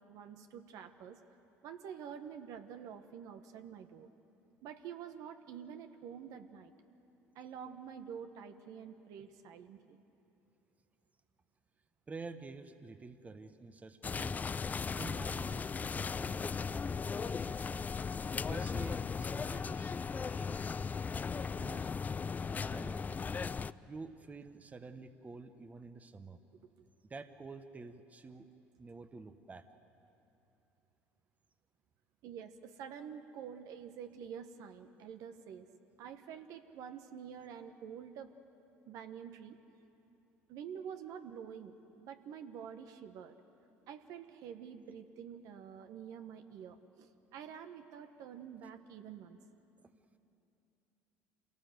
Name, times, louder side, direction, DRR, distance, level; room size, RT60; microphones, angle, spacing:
voice 1, 0.1-1.2 1.6-4.1 4.6-6.7 7.3-10.0 32.2-35.7 36.0-38.3 38.9-39.6 40.5-43.4 43.9-49.4, right 8 dB, 65° right, 8 dB, 1.2 m, -48 dB
voice 2, 12.1-14.4 15.0-17.9 18.5-20.9 21.3-21.9 22.6-23.2 23.9-26.4 27.0-28.5 28.8-29.6 49.8-49.9, right 4 dB, 25° right, 10 dB, 1.1 m, -49 dB
sound 1, 14.0-23.7, left 5 dB, 25° left, 0.4 m, -37 dB
26.0 x 18.0 x 8.0 m, 2.9 s
supercardioid pair, 80°, 6 cm